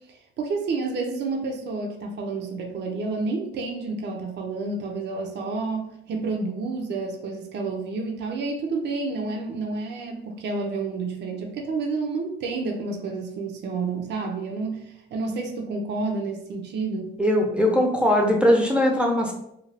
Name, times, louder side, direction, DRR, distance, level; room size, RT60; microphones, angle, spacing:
voice 1, 0.1-17.2, right 3 dB, 60° right, 1 dB, 0.5 m, -30 dB
voice 2, 17.2-19.3, left 1 dB, 5° right, 1 dB, 0.6 m, -20 dB
2.5 x 2.3 x 3.2 m, 0.78 s
cardioid pair, 90°, 20 cm